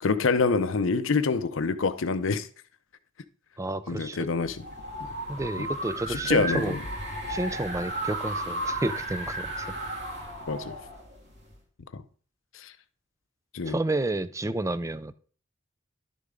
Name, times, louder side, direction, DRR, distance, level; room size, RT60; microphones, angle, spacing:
voice 1, 0.0-2.5 3.9-4.7 5.0-5.1 5.6-5.7 6.1-6.8 10.5-10.8 11.9-12.0 12.5-12.7 13.5-13.8, left 4 dB, 75° left, 0.6 m, -26 dB
voice 2, 3.6-4.2 5.3-6.8 7.3-9.7 13.7-15.1, right 2 dB, 15° right, 0.4 m, -30 dB
sound 1, 4.4-11.6, right 1 dB, 55° right, 2.6 m, -34 dB
11.5 x 6.7 x 3.7 m
head